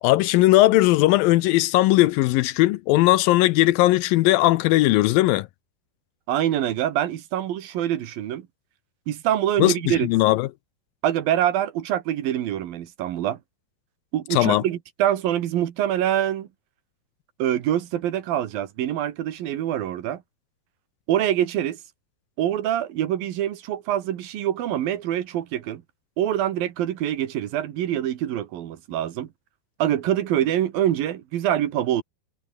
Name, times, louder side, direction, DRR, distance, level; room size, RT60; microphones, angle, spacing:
voice 1, 0.0-5.5 9.6-10.5 14.3-14.6, left 17 dB, 80° left, 2.3 m, -18 dB
voice 2, 6.3-8.5 9.1-10.1 11.0-13.4 14.1-16.5 17.4-20.2 21.1-21.8 22.4-25.8 26.2-29.3 29.8-32.0, right 11 dB, 70° right, 3.3 m, -25 dB
omnidirectional pair, 4.3 m